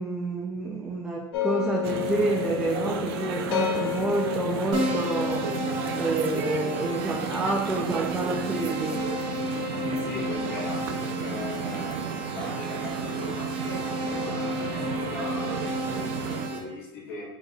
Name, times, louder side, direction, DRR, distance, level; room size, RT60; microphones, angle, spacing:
voice 1, 0.0-9.0 11.2-11.4, right 2 dB, 5° right, -1 dB, 0.3 m, -29 dB
sound 1, 1.3-10.5, left 10 dB, 90° left, 0.8 m, -33 dB
sound 2, 1.8-16.5, right 6 dB, 90° right, 0.5 m, -33 dB
Keyboard (musical), 4.7-16.6, right 1 dB, 60° right, 1.4 m, -33 dB
voice 2, 9.8-15.6 15.9-17.3, left 3 dB, 55° left, -5 dB, 1.2 m, -39 dB
5.2 x 4.1 x 2.3 m, 0.95 s
supercardioid pair, 160°, 12 cm